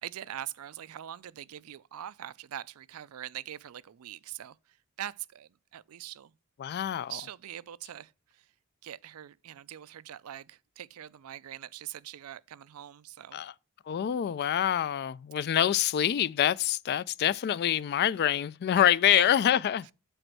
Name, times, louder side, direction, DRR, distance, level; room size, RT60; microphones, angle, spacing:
voice 1, 0.0-4.6 5.0-6.3 7.1-8.4 8.8-13.4 19.1-19.4, right 11 dB, 80° right, 0.4 m, -42 dB
voice 2, 6.6-7.2 13.3-13.5 13.9-19.9, left 10 dB, 50° left, 0.3 m, -26 dB
7.9 x 4.3 x 6.1 m
head